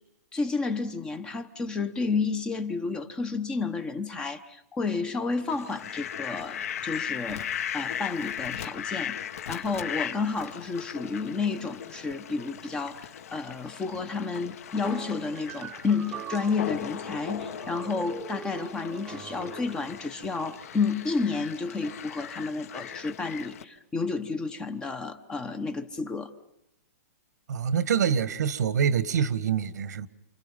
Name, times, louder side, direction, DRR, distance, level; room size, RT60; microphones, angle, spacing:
voice 1, 0.3-7.5 7.7-9.2 9.5-26.3, left 4 dB, 10° left, 0.9 m, -31 dB
Fowl, 5.5-23.6, left 9 dB, 60° left, 1.9 m, -38 dB
sound 1, 14.8-20.0, right 8 dB, 10° right, 1.0 m, -42 dB
voice 2, 27.5-30.1, right 7 dB, 85° right, 1.7 m, -25 dB
29.5 x 27.5 x 5.5 m
hypercardioid pair, 175°, 9 cm